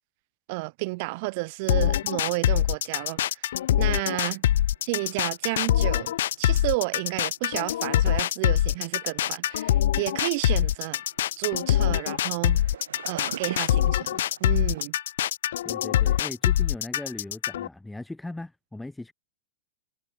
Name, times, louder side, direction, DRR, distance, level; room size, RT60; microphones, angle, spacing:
voice 1, 0.5-4.4 4.8-11.0 11.4-12.7 13.0-14.9, right 27 dB, 50° right, 3.0 m, -31 dB
sound 1, 1.7-17.7, left 12 dB, 65° left, 0.4 m, -24 dB
sound 2, 3.9-14.8, right 9 dB, 75° right, 4.9 m, -47 dB
voice 2, 15.6-19.1, left 2 dB, 5° left, 6.1 m, -38 dB
hypercardioid pair, 105°, 0 cm